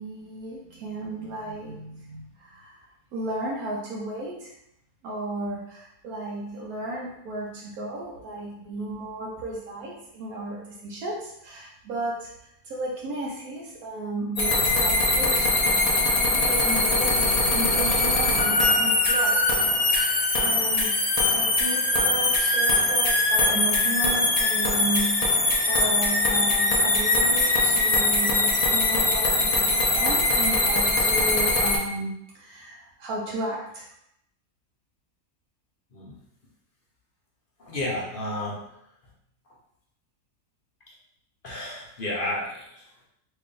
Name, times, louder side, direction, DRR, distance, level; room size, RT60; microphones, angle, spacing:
voice 1, 0.0-2.9 3.1-4.5 5.0-12.3 12.6-15.8 16.3-19.5 20.4-33.8, right 2 dB, 80° right, -3 dB, 1.2 m, -34 dB
sound 1, 14.4-31.8, left 2 dB, 70° left, 0.3 m, -22 dB
voice 2, 37.6-38.7 40.9-41.0 41.4-43.1, left 1 dB, 45° left, -4 dB, 0.7 m, -32 dB
3.2 x 2.6 x 3.7 m, 0.77 s
omnidirectional pair, 1.5 m